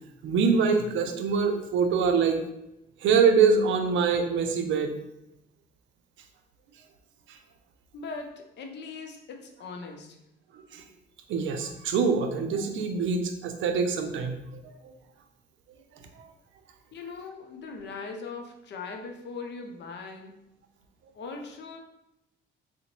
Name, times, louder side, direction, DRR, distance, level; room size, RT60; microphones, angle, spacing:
voice 1, 0.2-2.4 3.0-4.9 7.3-7.4 10.5-10.8 11.3-14.4 14.6-14.9, right 5 dB, 75° right, 6 dB, 0.5 m, -24 dB
voice 2, 7.9-10.2 16.9-20.3 21.1-21.8, left 4 dB, 60° left, 3 dB, 0.6 m, -40 dB
3.7 x 2.1 x 3.0 m, 0.86 s
cardioid pair, 90°, 20 cm